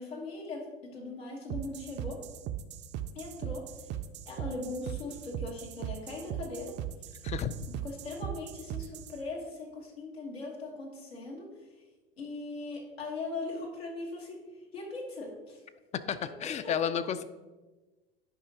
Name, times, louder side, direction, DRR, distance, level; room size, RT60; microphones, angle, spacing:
voice 1, 0.0-2.2 3.1-4.0 4.2-6.7 7.7-11.5 12.2-14.4 14.7-15.6 16.4-16.7, left 2 dB, 90° left, -2 dB, 1.4 m, -40 dB
sound 1, 1.5-9.2, right 10 dB, 35° right, 0.4 m, -38 dB
voice 2, 7.2-7.5 16.1-17.2, left 8 dB, 25° left, 13 dB, 0.3 m, -31 dB
10.0 x 4.9 x 2.8 m, 1.2 s
hypercardioid pair, 85°, 30 cm